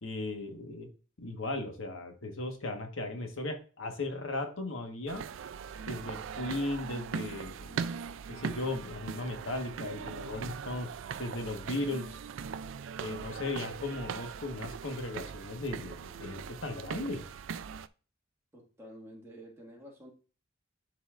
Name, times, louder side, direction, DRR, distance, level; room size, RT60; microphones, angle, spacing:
voice 1, 0.0-0.9 1.2-5.2 5.8-7.9 8.3-10.9 11.2-12.1 13.0-17.3, left 2 dB, 80° left, 4 dB, 1.4 m, -37 dB
sound 1, 5.1-17.9, right 6 dB, 70° right, 0.3 m, -40 dB
voice 2, 18.5-20.1, equal, 15° right, -3 dB, 1.8 m, -50 dB
11.5 x 4.2 x 2.5 m, 0.36 s
head